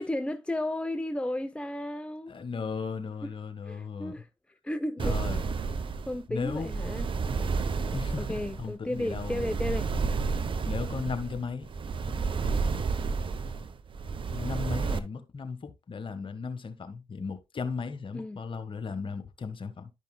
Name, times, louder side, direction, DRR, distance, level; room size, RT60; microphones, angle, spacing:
voice 1, 0.0-2.3 3.2-3.3 3.7-4.3 4.6-5.2 6.1-7.1 8.2-9.9 18.1-18.4, left 1 dB, 10° left, 0.8 m, -33 dB
voice 2, 2.3-4.2 5.0-5.4 6.3-6.7 7.9-9.5 10.6-11.7 14.3-19.9, left 5 dB, 50° left, 1.5 m, -36 dB
sound 1, 5.0-15.0, right 4 dB, 50° right, 0.9 m, -31 dB
12.0 x 5.4 x 2.3 m
hypercardioid pair, 40°, 11 cm